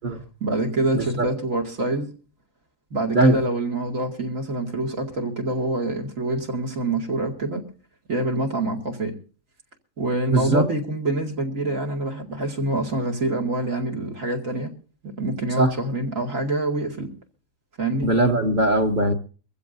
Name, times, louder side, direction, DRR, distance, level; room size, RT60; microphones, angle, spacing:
voice 1, 0.4-2.1 2.9-7.6 8.1-9.1 10.0-14.7 15.0-17.1 17.8-18.1, right 2 dB, 90° right, 5 dB, 2.7 m, -26 dB
voice 2, 0.9-1.3 3.1-3.4 10.3-10.7 15.6-15.7 18.0-19.1, right 2 dB, 45° right, 2 dB, 1.0 m, -20 dB
23.5 x 15.5 x 2.7 m, 0.37 s
omnidirectional pair, 1.3 m